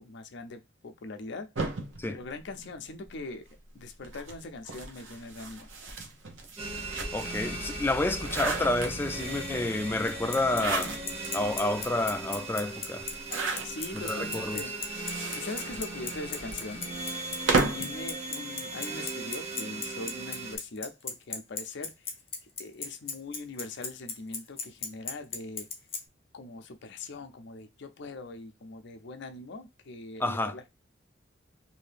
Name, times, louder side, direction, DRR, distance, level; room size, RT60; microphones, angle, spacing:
voice 1, 0.0-1.5 2.1-3.4 3.7-5.7 13.6-14.7 15.1-22.1 22.6-25.7 26.3-30.7, left 2 dB, 65° left, 0.5 m, -41 dB
sound 1, 1.6-3.2 4.0-7.5 7.9-9.3 10.3-11.3 11.8-11.9 12.1-12.2 13.1-14.0 14.7-18.0, right 3 dB, 70° right, 0.8 m, -33 dB
sound 2, 6.6-20.6, right 2 dB, 35° right, 0.9 m, -38 dB
voice 2, 7.1-10.9 11.3-13.1 13.9-14.6 30.2-30.5, left 2 dB, 10° left, 0.3 m, -29 dB
Bicycle, 10.1-26.0, left 5 dB, 30° left, 0.7 m, -34 dB
2.7 x 2.7 x 3.3 m
head